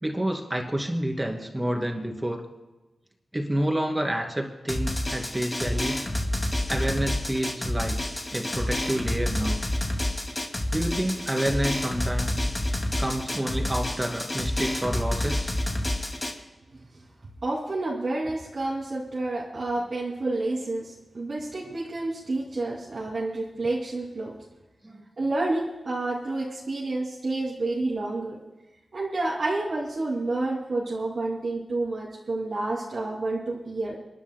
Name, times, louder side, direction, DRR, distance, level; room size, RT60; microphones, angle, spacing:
voice 1, 0.0-2.4 3.3-6.0 6.7-8.0 8.3-9.6 10.7-12.5 13.0-15.5 24.8-25.0, right 1 dB, 15° right, 2 dB, 2.5 m, -29 dB
Drum, 4.7-16.3, left 1 dB, 25° left, 2.2 m, -28 dB
voice 2, 17.4-24.4 25.2-28.4 28.9-34.0, right 2 dB, 55° right, -5 dB, 2.6 m, -29 dB
29.5 x 11.5 x 2.2 m, 1.1 s
wide cardioid pair, 95°, 0 cm